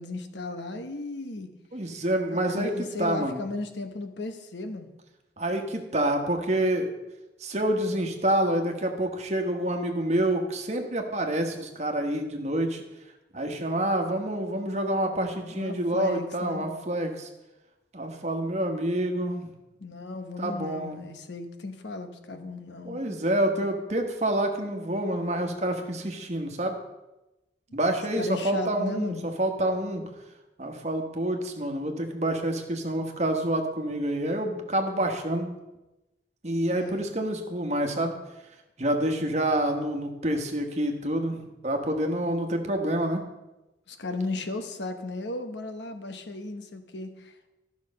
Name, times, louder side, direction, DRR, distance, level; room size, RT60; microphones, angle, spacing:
voice 1, 0.0-1.5 2.5-4.9 15.5-16.7 19.8-23.1 28.2-29.2 36.7-37.0 43.9-47.5, left 2 dB, 80° left, 8 dB, 1.0 m, -35 dB
voice 2, 1.7-3.4 5.4-6.9 7.4-12.8 13.3-17.3 17.9-19.5 20.4-21.2 22.8-26.8 27.7-30.0 30.6-35.5 36.4-38.2 38.8-43.2, right 1 dB, 40° right, 4 dB, 1.2 m, -27 dB
12.0 x 6.2 x 5.3 m, 1.0 s
head